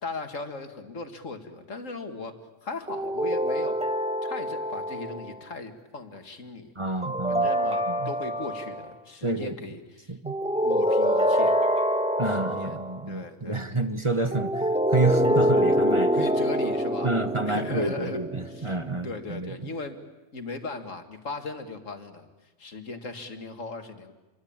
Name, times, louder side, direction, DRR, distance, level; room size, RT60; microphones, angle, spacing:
voice 1, 0.0-2.4 2.6-3.8 4.2-6.7 7.3-10.1 10.6-11.6 12.3-12.8 13.1-13.9 14.2-14.5 16.1-17.1 17.5-18.2 18.5-18.8 19.0-20.0 20.3-22.3 22.6-24.1, left 3 dB, 90° left, 6 dB, 2.5 m, -38 dB
sound 1, 2.9-5.3 7.0-8.9 10.3-13.0 14.3-18.8, equal, 5° right, 1.7 m, -25 dB
voice 2, 6.7-7.5 7.9-8.1 9.2-9.6 10.1-10.3 12.2-16.3 17.0-19.7, right 2 dB, 25° right, 9 dB, 1.2 m, -29 dB
27.5 x 24.0 x 8.8 m, 1.2 s
omnidirectional pair, 1.3 m